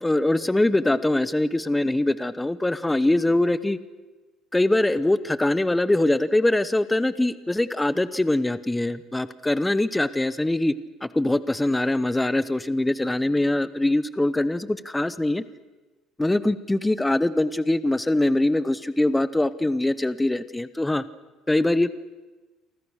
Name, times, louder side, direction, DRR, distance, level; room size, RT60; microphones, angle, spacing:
voice 1, 0.0-3.8 4.5-10.7 11.0-15.4 16.2-21.0 21.5-22.0, left 1 dB, 5° left, 15 dB, 1.0 m, -23 dB
30.0 x 24.0 x 6.5 m, 1.2 s
cardioid pair, 155°, 0 cm